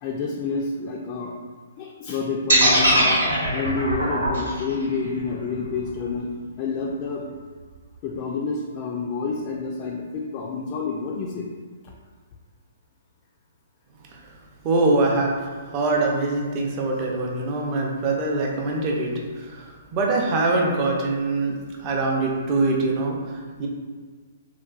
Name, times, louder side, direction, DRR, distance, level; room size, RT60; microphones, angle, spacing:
voice 1, 0.0-1.3 1.8-3.2 3.5-6.3 6.6-7.2 8.0-11.5, left 4 dB, 35° left, -2 dB, 0.3 m, -28 dB
sound 1, 2.5-6.5, right 1 dB, 80° right, 0.9 m, -21 dB
voice 2, 14.6-23.7, right 2 dB, 30° right, -1 dB, 0.5 m, -24 dB
3.7 x 2.2 x 2.3 m, 1.5 s
figure-of-eight pair, 125°, 0 cm